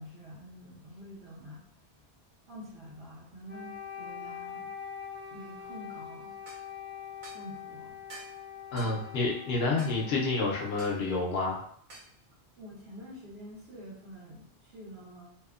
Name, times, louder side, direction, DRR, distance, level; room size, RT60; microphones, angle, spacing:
voice 1, 0.0-1.6 2.5-4.7 5.3-6.3 7.3-8.0 8.7-8.9 12.6-15.3, equal, 70° right, -6 dB, 0.9 m, -47 dB
Wind instrument woodwind instrument, 3.5-11.5, left 8 dB, 15° right, 0.3 m, -44 dB
sound 1, 6.5-6.6 7.2-7.4 8.1-8.4 8.8-9.0 9.8-10.0 10.8-11.0 11.9-12.1, right 2 dB, 55° right, 0.7 m, -47 dB
voice 2, 8.7-11.6, left 3 dB, 70° left, -2 dB, 0.9 m, -29 dB
2.7 x 2.1 x 2.3 m, 0.64 s
omnidirectional pair, 1.1 m